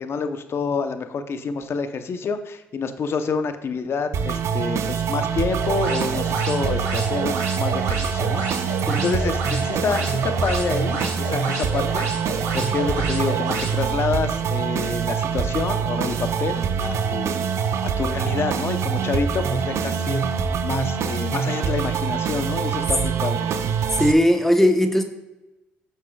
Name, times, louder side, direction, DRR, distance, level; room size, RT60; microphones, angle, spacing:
voice 1, 0.0-12.1 12.5-17.4 17.8-20.2 20.6-23.6, left 5 dB, 55° left, 8 dB, 0.8 m, -28 dB
sound 1, 4.1-24.1, right 6 dB, 65° right, 0.6 m, -25 dB
sound 2, 5.6-13.7, right 3 dB, 80° right, 2.4 m, -31 dB
voice 2, 24.0-25.0, equal, 5° left, 5 dB, 1.0 m, -18 dB
10.0 x 6.7 x 2.3 m, 1.0 s
supercardioid pair, 55°, 5 cm